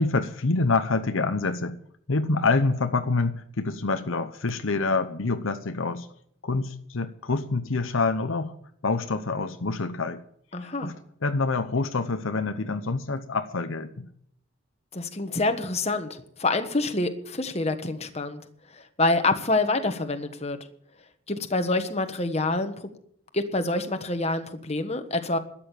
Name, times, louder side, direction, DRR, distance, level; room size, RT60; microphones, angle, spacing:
voice 1, 0.0-1.8 2.1-6.1 6.4-8.6 8.8-10.2 10.8-10.9 11.2-14.1, left 3 dB, 65° left, 8 dB, 0.8 m, -26 dB
voice 2, 10.5-10.9 14.9-18.4 18.7-20.6 21.3-22.9 23.3-25.4, left 2 dB, 30° left, 7 dB, 1.3 m, -27 dB
13.0 x 8.7 x 8.8 m, 0.66 s
head